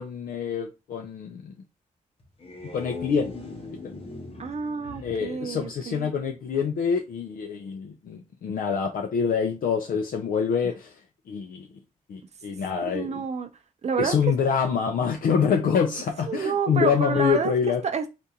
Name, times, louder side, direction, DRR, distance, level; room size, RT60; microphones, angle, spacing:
voice 1, 0.0-1.5 2.7-3.3 5.0-11.0 11.3-11.7 12.1-13.3 14.0-17.8, left 6 dB, 80° left, 0.5 m, -26 dB
sound 1, 2.2-6.4, left 3 dB, 40° left, 0.8 m, -40 dB
voice 2, 4.4-6.1 12.8-13.5 13.8-14.2 16.3-18.1, right 6 dB, 50° right, 0.6 m, -29 dB
3.6 x 2.5 x 2.8 m
wide cardioid pair, 115°, 14 cm